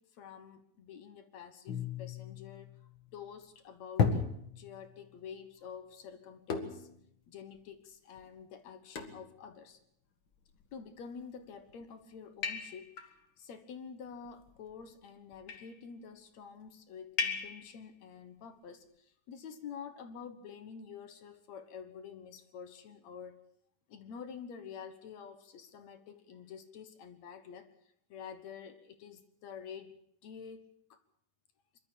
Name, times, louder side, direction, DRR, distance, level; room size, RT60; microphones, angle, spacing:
voice 1, 0.0-4.3 4.6-6.9 7.3-9.8 10.7-12.9 13.4-23.4 23.9-27.7 28.1-29.9 30.2-31.0, left 7 dB, 60° left, 10 dB, 2.3 m, -48 dB
sound 1, 1.7-3.1 4.0-4.9 6.5-7.0 7.6-7.7 8.2-8.3 9.0-9.3 10.4-10.9 11.5-11.8 12.4-13.1 14.2-14.8 15.3-15.8 17.2-17.8, left 5 dB, 45° left, 2.0 m, -35 dB
24.5 x 12.5 x 8.6 m, 0.70 s
omnidirectional pair, 3.8 m